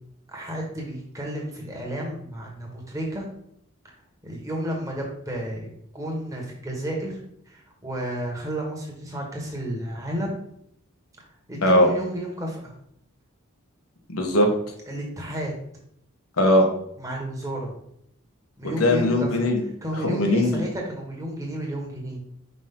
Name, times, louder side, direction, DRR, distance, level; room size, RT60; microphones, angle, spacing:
voice 1, 0.3-3.2 4.2-7.2 7.5-10.4 11.5-12.7 14.9-15.5 17.0-17.7 18.6-19.3 19.8-22.2, right 1 dB, 15° right, -1 dB, 1.4 m, -32 dB
voice 2, 14.1-14.5 16.4-16.7 18.8-19.6 19.9-20.6, left 1 dB, 80° left, 2 dB, 1.3 m, -19 dB
5.3 x 5.1 x 3.7 m, 0.72 s
head